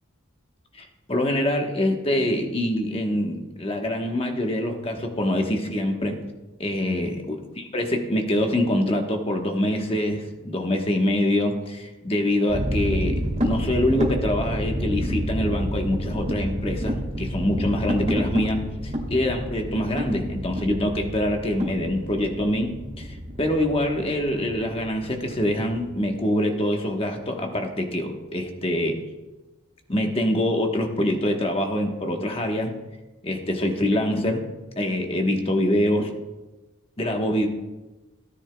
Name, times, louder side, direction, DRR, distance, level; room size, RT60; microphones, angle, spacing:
voice 1, 0.8-6.2 6.6-29.0 29.9-32.7 33.2-34.4 34.8-36.1 37.0-37.5, left 1 dB, 25° left, 3 dB, 1.1 m, -25 dB
sound 1, 12.5-26.1, equal, 35° right, 1.7 m, -29 dB
17.5 x 10.0 x 2.3 m, 1.1 s
head